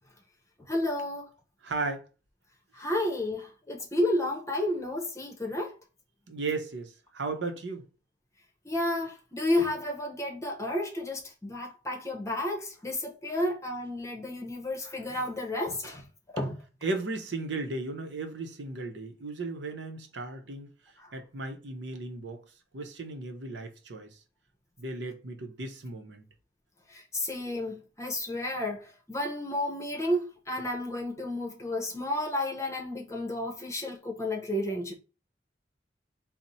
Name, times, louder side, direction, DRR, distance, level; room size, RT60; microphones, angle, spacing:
voice 1, 0.6-1.3 2.7-5.7 8.6-16.0 16.3-16.6 21.0-21.1 26.9-34.9, left 1 dB, 15° left, 0.8 m, -31 dB
voice 2, 1.6-2.1 6.3-7.9 16.8-20.7 21.1-22.4 22.7-24.2 24.8-26.2, right 3 dB, 75° right, 0.7 m, -35 dB
4.3 x 2.1 x 4.0 m
head